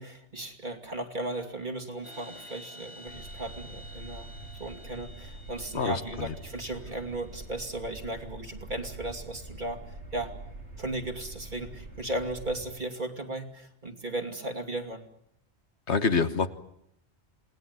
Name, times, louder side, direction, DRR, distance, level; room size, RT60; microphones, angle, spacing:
voice 1, 0.0-4.3 4.6-10.3 10.8-15.1, right 2 dB, 45° right, 5 dB, 2.9 m, -36 dB
sound 1, 2.0-7.6, left 1 dB, 65° right, 4.1 m, -50 dB
sound 2, 3.1-12.6, right 1 dB, 85° right, 6.0 m, -45 dB
voice 2, 5.7-6.3 15.9-16.5, left 5 dB, 75° left, 11 dB, 1.7 m, -26 dB
28.0 x 19.5 x 9.6 m, 0.77 s
omnidirectional pair, 1.2 m